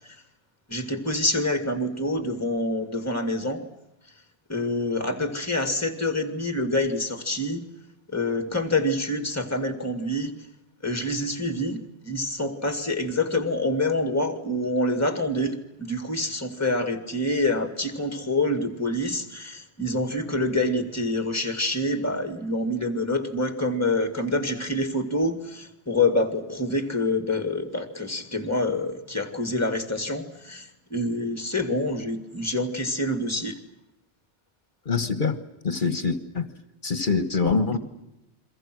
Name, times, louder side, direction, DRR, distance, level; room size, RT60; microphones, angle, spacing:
voice 1, 0.7-3.6 4.5-7.6 8.1-10.3 10.8-33.6, left 1 dB, 15° left, 2.3 m, -26 dB
voice 2, 34.8-35.4 35.6-36.5 36.8-37.8, left 4 dB, 50° left, 1.6 m, -24 dB
30.0 x 23.0 x 6.3 m
omnidirectional pair, 1.1 m